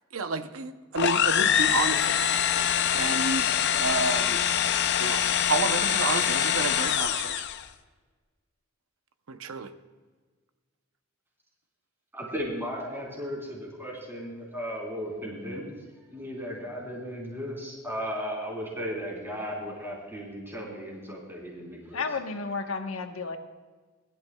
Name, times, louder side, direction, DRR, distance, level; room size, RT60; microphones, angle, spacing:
voice 1, 0.1-2.3 3.0-4.4 5.0-5.2 5.5-7.4 9.3-9.7, right 3 dB, 80° right, 9 dB, 0.7 m, -30 dB
sound 1, 1.0-7.7, left 9 dB, 55° left, 0.6 m, -24 dB
sound 2, 3.9-6.2, left 4 dB, 30° left, 2.1 m, -49 dB
voice 2, 12.1-15.6 16.1-22.0, equal, 10° right, -3 dB, 3.6 m, -35 dB
voice 3, 21.9-23.4, left 4 dB, 85° left, 5 dB, 1.1 m, -32 dB
21.5 x 12.0 x 2.3 m, 1.4 s
head